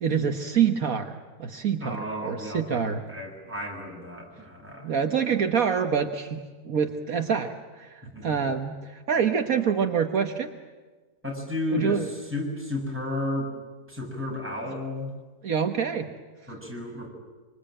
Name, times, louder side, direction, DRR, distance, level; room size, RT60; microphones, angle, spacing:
voice 1, 0.0-3.0 4.8-10.5 11.7-12.1 15.4-16.1, right 7 dB, 65° right, 5 dB, 1.7 m, -26 dB
voice 2, 1.8-4.9 8.1-8.4 11.2-13.5 13.9-15.1 16.5-17.1, left 1 dB, 5° right, -1 dB, 7.0 m, -33 dB
26.0 x 25.5 x 9.0 m, 1.3 s
omnidirectional pair, 1.6 m